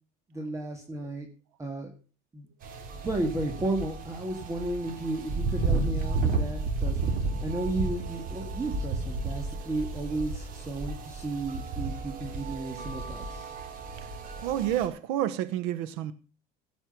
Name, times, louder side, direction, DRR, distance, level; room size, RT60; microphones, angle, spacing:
voice 1, 0.3-1.3 1.6-1.9 2.3-2.5 2.9-7.0 7.4-13.5, right 2 dB, 15° right, 1.9 m, -33 dB
sound 1, 2.6-14.9, right 3 dB, 50° right, 3.4 m, -32 dB
voice 2, 14.4-16.1, right 12 dB, 85° right, 1.0 m, -29 dB
16.5 x 6.2 x 6.9 m
cardioid pair, 135°, 19 cm